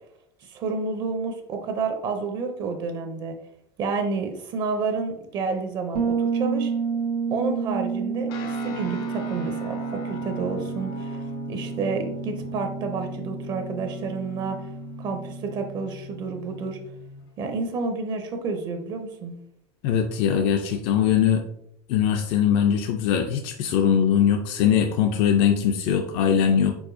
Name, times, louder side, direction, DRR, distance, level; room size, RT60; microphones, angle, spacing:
voice 1, 0.4-3.4 3.8-6.7 7.3-14.7 15.0-16.8 17.4-19.3, right 4 dB, 35° right, 5 dB, 0.5 m, -30 dB
Bass guitar, 5.9-15.6, right 6 dB, 85° right, 1.2 m, -30 dB
sound 1, 8.3-17.2, left 2 dB, 70° left, 1.0 m, -39 dB
voice 2, 19.8-21.4 21.9-26.8, left 8 dB, 50° left, 5 dB, 0.4 m, -21 dB
4.6 x 4.2 x 2.6 m, 0.75 s
cardioid pair, 165°, 13 cm